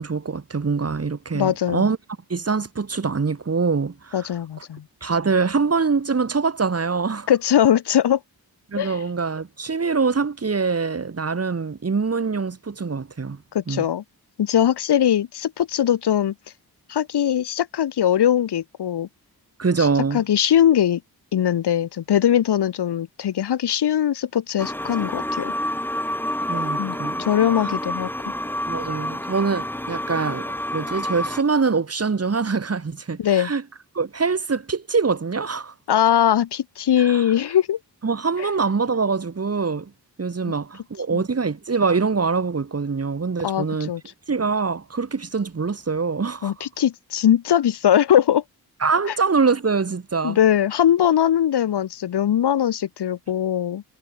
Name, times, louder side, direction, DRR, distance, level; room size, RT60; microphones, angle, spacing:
voice 1, 0.0-2.0 2.3-4.3 5.0-7.3 8.7-13.4 13.7-13.9 19.6-20.2 26.5-27.2 27.6-27.7 28.7-33.6 33.9-35.7 37.0-37.3 38.0-39.9 40.2-43.9 44.3-46.5 48.8-50.4, right 4 dB, 40° right, 5.7 m, -24 dB
voice 2, 1.3-1.9 4.1-4.8 7.3-8.2 8.8-9.0 13.5-14.0 14.4-16.3 16.9-19.1 20.1-21.0 21.3-25.5 26.8-28.1 33.2-33.5 35.9-37.8 41.1-41.2 43.4-44.0 46.4-48.4 50.2-53.8, left 10 dB, 85° left, 1.5 m, -20 dB
sound 1, 24.6-31.4, left 1 dB, 5° left, 1.6 m, -28 dB
wide cardioid pair, 135°, 39 cm